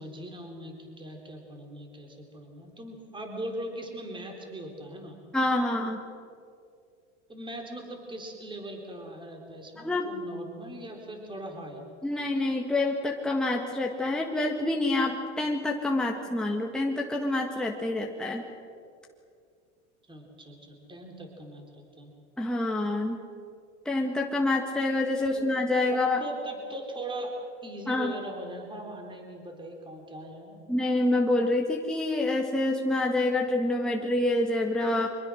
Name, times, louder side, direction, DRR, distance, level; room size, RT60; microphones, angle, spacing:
voice 1, 0.0-5.2 7.3-11.8 20.1-22.1 25.3-25.5 25.9-27.3 27.6-30.6, right 1 dB, 15° right, 2 dB, 4.0 m, -40 dB
voice 2, 5.3-6.0 9.8-10.1 12.0-18.4 22.4-23.2 23.9-26.2 27.9-28.1 30.7-35.1, left 2 dB, ahead, 0 dB, 1.7 m, -27 dB
24.5 x 21.0 x 6.4 m, 2.4 s
supercardioid pair, 110°, 35 cm